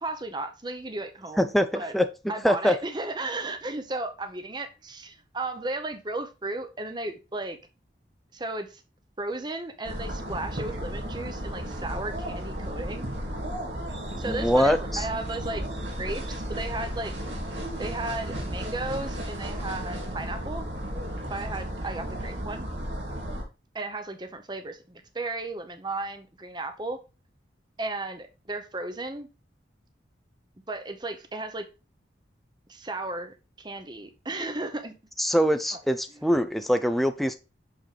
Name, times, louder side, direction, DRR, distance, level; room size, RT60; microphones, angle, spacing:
voice 1, 0.0-1.9 2.3-7.6 8.3-8.8 9.2-13.1 14.2-15.6 16.0-17.1 17.8-20.7 21.3-22.7 23.7-27.0 27.8-29.3 30.7-31.6 32.7-34.9 36.2-36.3, right 2 dB, 25° right, 0.8 m, -34 dB
voice 2, 1.4-2.1 2.4-2.7 14.2-15.1 35.2-37.3, equal, ahead, 0.4 m, -23 dB
sound 1, 9.8-23.4, equal, 80° right, 2.6 m, -34 dB
6.3 x 5.8 x 3.3 m
head